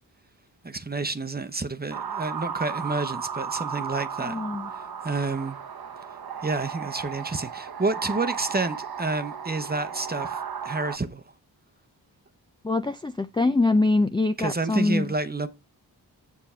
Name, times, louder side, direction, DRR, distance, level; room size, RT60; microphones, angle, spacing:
voice 1, 0.6-4.4 4.7-5.6 6.4-11.2 14.4-15.5, right 3 dB, 20° right, 0.8 m, -29 dB
sound 1, 1.9-11.0, right 7 dB, 60° right, 0.9 m, -35 dB
voice 2, 4.2-4.7 12.6-15.1, left 2 dB, 10° left, 0.4 m, -24 dB
7.2 x 6.9 x 4.4 m
cardioid pair, 45°, 42 cm